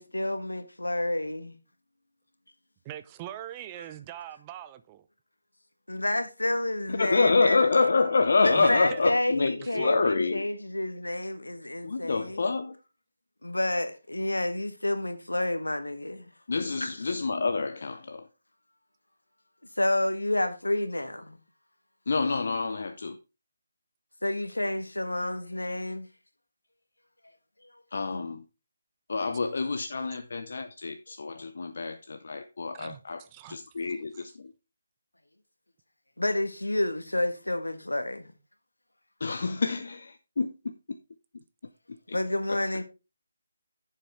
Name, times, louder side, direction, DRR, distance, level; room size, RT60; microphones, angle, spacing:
voice 1, 0.0-1.5 5.9-7.6 8.4-12.4 13.4-16.3 16.8-16.9 19.8-21.4 24.2-26.1 36.2-38.3 42.1-42.8, left 1 dB, 80° left, 1.3 m, -29 dB
voice 2, 2.8-5.1 8.6-9.0 9.6-10.0 32.7-33.6, right 12 dB, 20° right, 0.5 m, -42 dB
voice 3, 6.9-10.5 11.8-12.8 16.5-18.3 22.1-23.2 27.9-28.4 29.1-33.2 33.5-34.5 39.2-41.0 41.3-41.4 41.9-42.2 42.5-42.6, left 4 dB, 55° left, 0.6 m, -27 dB
10.0 x 7.3 x 3.4 m
figure-of-eight pair, 150°, 0 cm